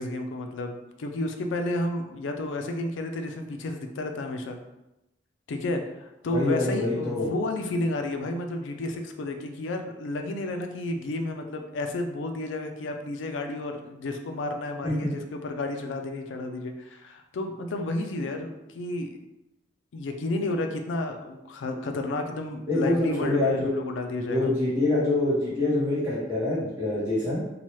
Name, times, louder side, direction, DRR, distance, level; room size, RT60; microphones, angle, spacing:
voice 1, 0.0-4.6 5.5-19.2 19.9-24.5, left 2 dB, 90° left, 5 dB, 0.4 m, -31 dB
voice 2, 6.3-7.3 14.8-14.9 22.7-23.7 24.3-27.4, left 2 dB, 15° right, -12 dB, 0.8 m, -25 dB
2.8 x 2.2 x 3.1 m, 0.93 s
head